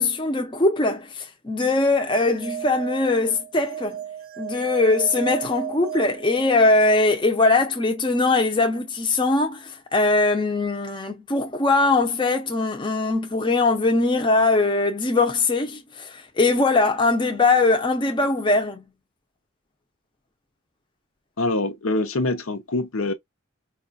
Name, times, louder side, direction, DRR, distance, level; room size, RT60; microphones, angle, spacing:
voice 1, 0.0-4.0 4.4-18.8, left 3 dB, 20° left, 0.6 m, -21 dB
sound 1, 2.2-7.0, right 10 dB, 40° right, 0.4 m, -35 dB
voice 2, 21.4-23.1, left 2 dB, 75° left, 0.8 m, -24 dB
4.8 x 2.3 x 2.4 m
head